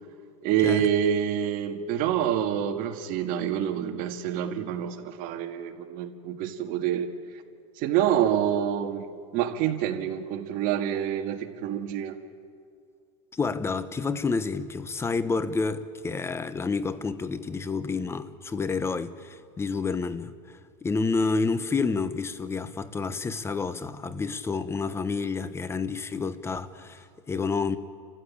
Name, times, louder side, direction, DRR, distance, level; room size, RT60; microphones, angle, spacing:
voice 1, 0.4-7.1 7.8-12.2, right 10 dB, 50° right, 1.9 m, -27 dB
voice 2, 13.3-27.8, left 4 dB, 15° left, 0.9 m, -29 dB
29.5 x 14.5 x 8.5 m
supercardioid pair, 130°, 17 cm